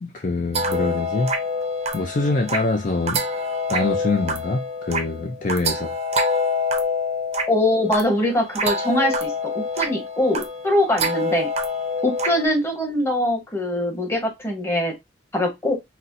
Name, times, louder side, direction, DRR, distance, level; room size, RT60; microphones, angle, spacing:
voice 1, 0.0-1.3 1.9-3.2 3.7-6.0, left 3 dB, 45° left, 0.5 m, -24 dB
sound 1, 0.5-12.5, left 1 dB, 35° right, 0.6 m, -26 dB
voice 2, 7.5-11.5 12.0-14.9 15.3-15.7, left 1 dB, 15° left, 1.0 m, -22 dB
4.2 x 2.1 x 2.5 m
head